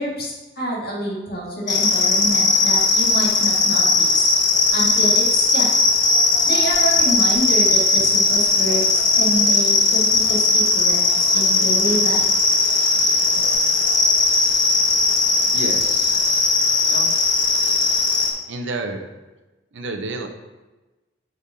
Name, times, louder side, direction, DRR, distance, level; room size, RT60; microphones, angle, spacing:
voice 1, 0.0-4.3 4.7-5.8 6.5-12.3, right 1 dB, 50° left, -3 dB, 1.9 m, -27 dB
sound 1, 1.7-18.3, left 3 dB, 70° left, 0.9 m, -18 dB
voice 2, 15.5-16.2 16.8-17.1 18.5-19.0 19.7-20.3, right 2 dB, 70° right, 5 dB, 0.7 m, -30 dB
9.1 x 5.2 x 2.8 m, 1.1 s
head